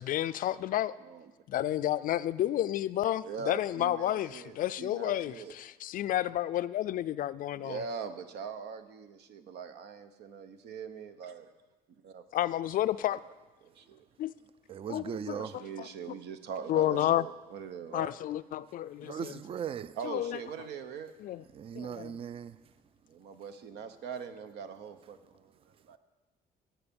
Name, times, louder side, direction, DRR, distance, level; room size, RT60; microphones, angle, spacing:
voice 1, 0.0-0.9 1.5-7.8 12.3-13.2 14.2-14.3 14.9-15.4 16.7-17.2 17.9-19.3 20.0-20.4 21.2-21.4 21.8-22.1, left 13 dB, 55° left, 0.4 m, -31 dB
voice 2, 1.0-1.3 3.2-5.5 7.5-11.5 11.9-12.2 13.0-13.2 13.6-14.0 15.1-18.1 20.0-21.1 23.1-26.0, right 6 dB, 75° right, 1.0 m, -42 dB
voice 3, 14.7-15.6 19.0-20.0 21.5-22.6, right 8 dB, 35° right, 0.4 m, -38 dB
16.5 x 5.9 x 7.0 m
cardioid pair, 110°, 17 cm